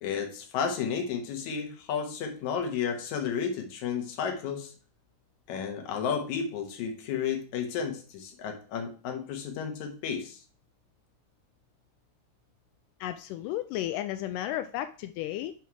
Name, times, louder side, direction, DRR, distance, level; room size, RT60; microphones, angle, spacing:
voice 1, 0.0-4.7 5.5-10.4, left 7 dB, 65° left, 2.5 m, -32 dB
voice 2, 13.0-15.5, left 13 dB, 90° left, 2.2 m, -33 dB
6.0 x 5.5 x 4.7 m
omnidirectional pair, 3.7 m